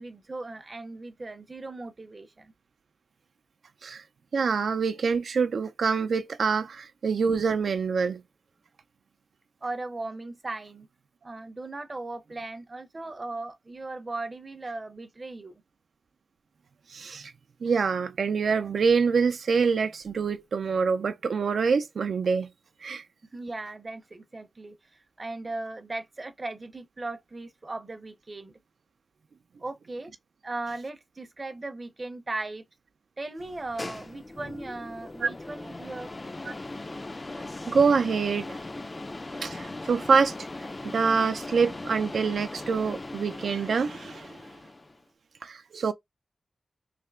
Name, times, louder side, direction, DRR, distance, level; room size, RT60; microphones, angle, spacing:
voice 1, 0.0-2.5 9.6-10.9 11.2-15.6 23.3-28.5 29.6-30.1 30.4-32.6 33.2-36.1, right 2 dB, 30° right, 0.6 m, -37 dB
voice 2, 4.3-8.2 16.9-17.3 17.6-22.5 22.8-23.0 35.2-35.3 36.5-36.6 37.7-38.6 39.4-40.3 40.9-44.4 45.4-45.9, right 5 dB, 85° right, 0.3 m, -25 dB
sound 1, 33.4-45.0, left 2 dB, 25° left, 0.3 m, -39 dB
3.3 x 2.8 x 3.3 m
wide cardioid pair, 160°, 0 cm